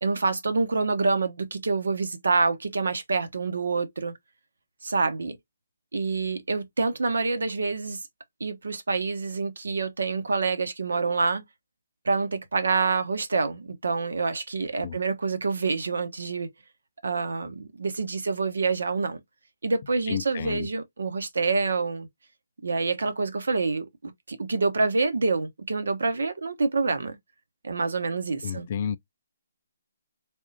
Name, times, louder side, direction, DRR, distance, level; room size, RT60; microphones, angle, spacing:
voice 1, 0.0-4.1 4.8-5.4 5.9-8.0 8.4-11.4 12.0-16.5 17.0-19.2 19.6-22.1 22.6-27.2 27.6-28.7, right 4 dB, 75° right, 0.9 m, -27 dB
voice 2, 20.1-20.7 28.4-29.0, left 8 dB, 45° left, 0.4 m, -31 dB
3.5 x 3.5 x 2.7 m
hypercardioid pair, 150°, 0 cm